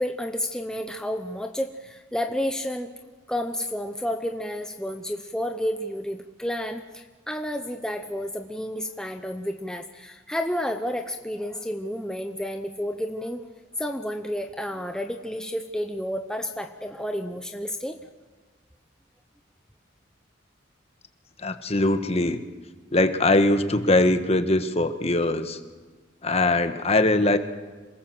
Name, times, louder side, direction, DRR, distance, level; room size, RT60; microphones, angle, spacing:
voice 1, 0.0-2.9 3.3-13.4 13.8-18.0, equal, 5° left, 5 dB, 0.9 m, -31 dB
voice 2, 21.4-22.4 22.9-25.6 26.2-27.4, left 2 dB, 35° left, 9 dB, 1.4 m, -21 dB
27.0 x 19.0 x 7.8 m, 1.3 s
head